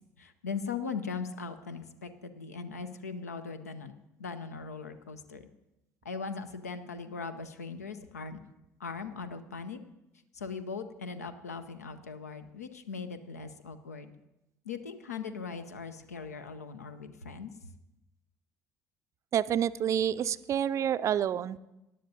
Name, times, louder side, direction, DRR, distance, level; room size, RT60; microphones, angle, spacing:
voice 1, 0.2-3.9 4.2-5.4 6.0-8.4 8.8-9.8 10.3-14.1 14.6-17.7, left 5 dB, 80° left, 10 dB, 0.7 m, -39 dB
voice 2, 19.3-21.6, right 9 dB, 35° right, 16 dB, 0.4 m, -28 dB
17.5 x 11.0 x 2.8 m, 0.91 s
figure-of-eight pair, 60°, 8 cm